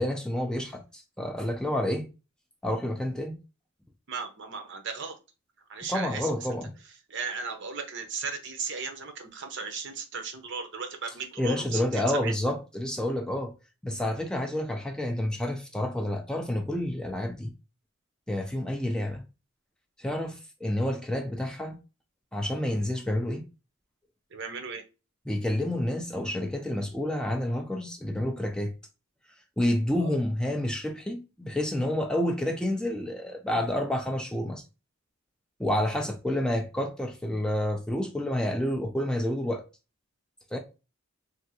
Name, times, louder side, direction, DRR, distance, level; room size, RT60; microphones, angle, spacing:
voice 1, 0.0-2.1 2.6-3.4 5.9-6.7 11.4-13.5 13.8-17.5 18.3-19.2 20.0-21.8 22.3-23.4 25.3-28.7 29.6-34.6 35.6-39.6 40.5-40.6, left 1 dB, 5° left, 0.3 m, -29 dB
voice 2, 4.1-5.2 5.7-6.3 7.1-12.4 24.3-24.8 30.0-30.1, right 5 dB, 60° right, 0.7 m, -36 dB
3.3 x 2.4 x 2.8 m
head